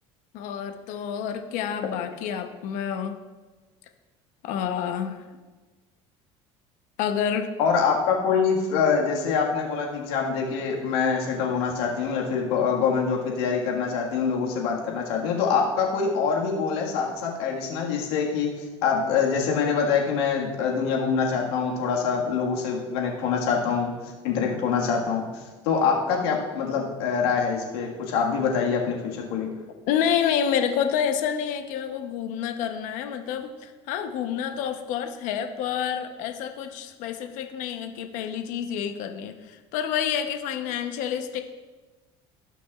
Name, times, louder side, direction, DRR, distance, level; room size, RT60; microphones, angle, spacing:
voice 1, 0.3-3.2 4.4-5.2 7.0-7.5 29.9-41.4, left 8 dB, 70° left, 7 dB, 0.9 m, -28 dB
voice 2, 7.6-23.9 24.2-29.5, left 6 dB, 90° left, -1 dB, 1.7 m, -25 dB
16.0 x 6.0 x 2.4 m, 1.3 s
supercardioid pair, 95°, 13 cm